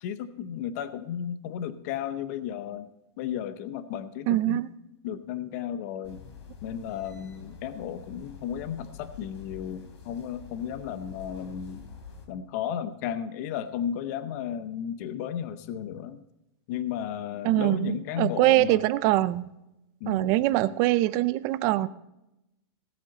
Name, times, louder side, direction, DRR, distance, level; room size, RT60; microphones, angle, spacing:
voice 1, 0.0-2.9 3.2-4.6 5.0-6.2 6.6-11.8 12.3-16.2 16.7-18.8 20.0-20.3, left 9 dB, 35° left, 12 dB, 0.7 m, -34 dB
voice 2, 4.3-4.7 17.4-19.5 20.1-21.9, right 16 dB, 25° right, 15 dB, 0.4 m, -23 dB
sound 1, 6.0-12.3, left 5 dB, 90° left, 3.6 m, -46 dB
18.0 x 8.1 x 4.2 m, 0.89 s
supercardioid pair, 170°, 14 cm